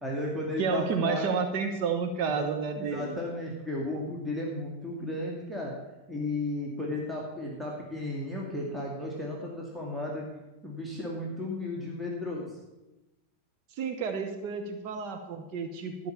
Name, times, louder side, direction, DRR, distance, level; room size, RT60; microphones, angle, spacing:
voice 1, 0.0-1.3 2.4-2.5 2.7-5.7 6.1-10.3 10.6-12.5, left 1 dB, 5° right, -2 dB, 2.1 m, -34 dB
voice 2, 0.6-3.2 13.7-16.1, right 5 dB, 40° right, 5 dB, 1.1 m, -31 dB
13.0 x 5.8 x 7.2 m, 1.0 s
figure-of-eight pair, 90°, 0 cm